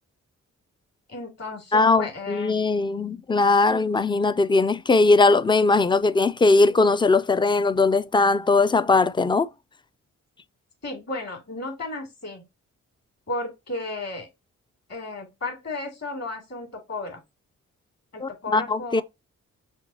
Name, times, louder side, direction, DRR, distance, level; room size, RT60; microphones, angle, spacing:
voice 1, 1.1-2.6 10.8-12.4 13.3-14.3 14.9-17.2 18.1-19.0, left 2 dB, 50° left, 2.6 m, -34 dB
voice 2, 1.7-9.5 18.2-19.0, left 3 dB, 15° left, 0.4 m, -20 dB
5.9 x 2.7 x 2.7 m
cardioid pair, 60°, 32 cm